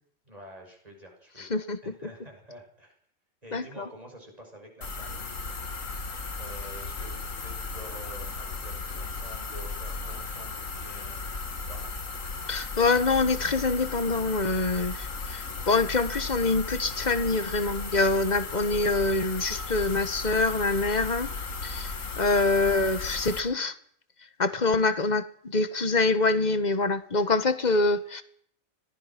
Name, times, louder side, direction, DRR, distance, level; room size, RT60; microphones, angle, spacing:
voice 1, 0.3-3.0 3.4-11.9, equal, 25° right, 2 dB, 6.6 m, -48 dB
voice 2, 1.4-1.8 3.5-3.8 12.5-21.3 21.6-23.7 24.4-28.2, left 3 dB, 30° left, 11 dB, 1.5 m, -25 dB
sound 1, 4.8-23.4, left 4 dB, 65° left, 2.3 m, -36 dB
25.5 x 19.0 x 6.1 m, 0.63 s
omnidirectional pair, 1.5 m